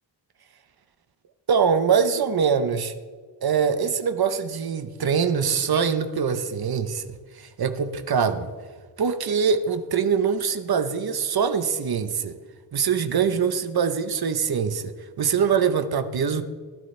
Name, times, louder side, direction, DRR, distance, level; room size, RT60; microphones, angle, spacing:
voice 1, 1.5-2.9 3.4-8.5 9.0-12.4 12.7-16.4, right 6 dB, 55° right, 0.9 m, -23 dB
16.0 x 12.0 x 3.3 m
wide cardioid pair, 120°, 45 cm